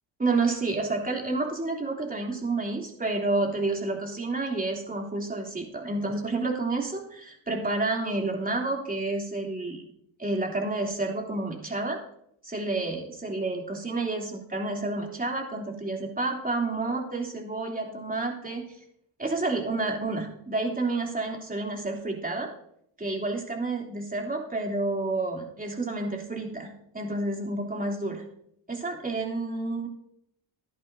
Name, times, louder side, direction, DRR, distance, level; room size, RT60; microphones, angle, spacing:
voice 1, 0.2-9.8 10.2-12.0 12.4-18.6 19.2-22.5 23.0-28.2 28.7-29.9, right 2 dB, 20° right, 0 dB, 3.0 m, -30 dB
14.0 x 11.0 x 2.7 m, 0.72 s
cardioid pair, 80°, 47 cm